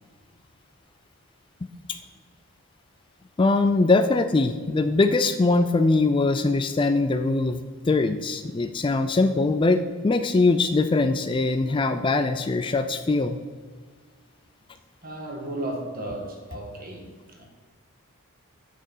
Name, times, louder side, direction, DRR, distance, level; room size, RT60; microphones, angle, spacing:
voice 1, 3.4-13.4, left 3 dB, 20° left, 8 dB, 0.3 m, -22 dB
voice 2, 15.0-17.1 17.4-17.5, right 1 dB, 40° right, 0 dB, 1.7 m, -34 dB
8.0 x 6.7 x 5.5 m, 1.5 s
head